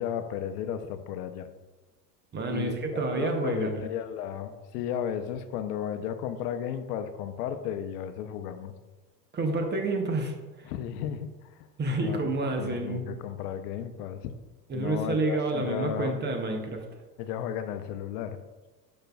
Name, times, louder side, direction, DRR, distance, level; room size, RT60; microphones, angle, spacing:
voice 1, 0.0-1.5 2.5-8.7 10.7-11.3 12.0-12.2 12.6-14.3 14.7-16.2 17.2-18.4, left 9 dB, 70° left, 9 dB, 0.7 m, -34 dB
voice 2, 2.3-3.8 9.3-10.7 11.8-13.0 14.7-16.8, right 2 dB, 20° right, 4 dB, 0.7 m, -29 dB
8.8 x 5.2 x 2.3 m, 1.2 s
supercardioid pair, 110°, 49 cm